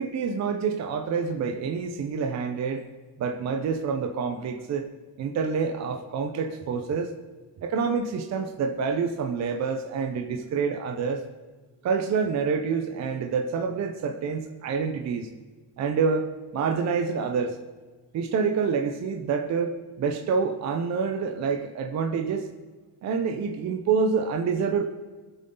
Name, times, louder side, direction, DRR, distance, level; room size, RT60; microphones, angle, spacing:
voice 1, 0.0-2.8 3.2-4.9 5.2-7.1 7.6-11.2 11.8-15.3 15.8-16.3 16.5-17.6 18.1-22.5 23.0-24.8, right 5 dB, 45° right, 5 dB, 0.9 m, -27 dB
24.0 x 8.2 x 3.9 m, 1.4 s
cardioid pair, 175°, 38 cm